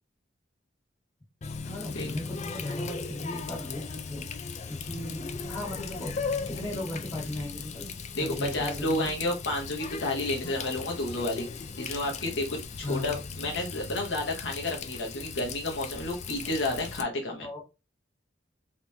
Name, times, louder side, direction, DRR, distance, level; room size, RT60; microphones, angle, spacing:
Water tap faucet, 1.4-17.0, left 5 dB, 35° left, 0.4 m, -38 dB
voice 1, 1.6-6.1 6.4-7.9 8.2-9.1 12.8-13.2 17.4-17.6, left 1 dB, 20° left, -2 dB, 1.7 m, -37 dB
Bass guitar, 5.4-11.7, left 2 dB, 55° right, 0.9 m, -54 dB
voice 2, 8.2-17.5, left 2 dB, 65° left, 0 dB, 0.9 m, -31 dB
3.6 x 3.0 x 2.7 m, 0.27 s
head